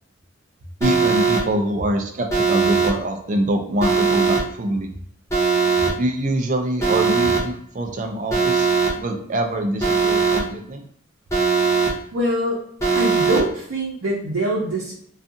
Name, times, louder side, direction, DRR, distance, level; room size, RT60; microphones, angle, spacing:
Alarm, 0.8-1.4 2.3-2.9 3.8-4.4 5.3-5.9 6.8-7.4 8.3-8.9 9.8-10.4 11.3-11.9 12.8-13.4, right 5 dB, 15° left, 0.6 m, -19 dB
voice 1, 0.8-4.9 6.0-8.7 9.0-10.8, right 1 dB, 35° right, 4 dB, 0.4 m, -24 dB
voice 2, 12.1-12.6 12.9-14.9, right 1 dB, 85° right, -5 dB, 0.6 m, -23 dB
2.6 x 2.4 x 2.5 m, 0.64 s
head